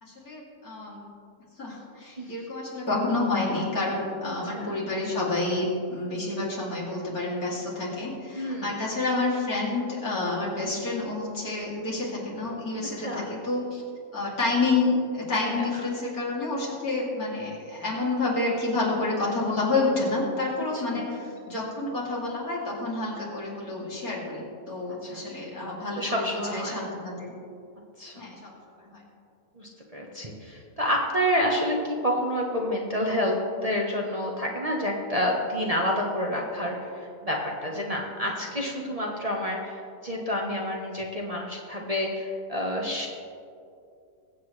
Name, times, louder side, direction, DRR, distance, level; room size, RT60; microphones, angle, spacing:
voice 1, 0.0-1.0 1.6-13.8 14.1-27.3 28.2-28.5 28.8-29.0 38.2-38.3, left 3 dB, 70° left, -5 dB, 3.3 m, -29 dB
voice 2, 8.3-8.8 13.0-13.4 15.4-15.6 20.7-21.1 24.9-25.2 26.0-26.9 28.0-28.2 29.6-37.4 37.6-43.1, equal, 25° right, -2 dB, 1.1 m, -29 dB
22.0 x 8.1 x 3.3 m, 2.5 s
omnidirectional pair, 1.6 m